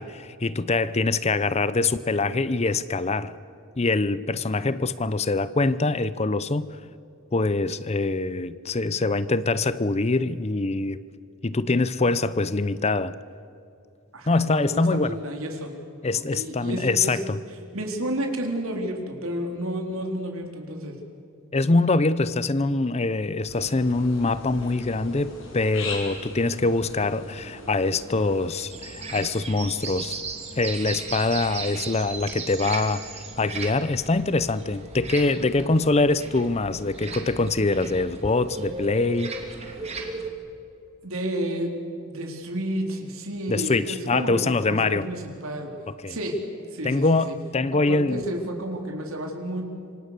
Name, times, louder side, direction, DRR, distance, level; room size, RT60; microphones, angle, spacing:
voice 1, 0.0-3.3 3.8-6.7 7.3-11.0 11.4-13.1 14.3-15.2 16.0-17.4 21.5-30.2 30.6-39.4 43.5-45.1 46.0-46.2 46.8-48.2, left 3 dB, 30° left, 0.6 m, -24 dB
voice 2, 14.1-15.7 16.1-17.2 17.7-21.0 41.0-41.7 42.1-45.7 46.1-46.4 46.7-47.3 47.7-49.7, right 1 dB, 70° right, 3.9 m, -31 dB
sound 1, 23.5-28.5, left 3 dB, 60° left, 6.3 m, -39 dB
sound 2, 28.7-40.3, right 3 dB, 30° right, 2.9 m, -36 dB
27.0 x 25.0 x 6.7 m
head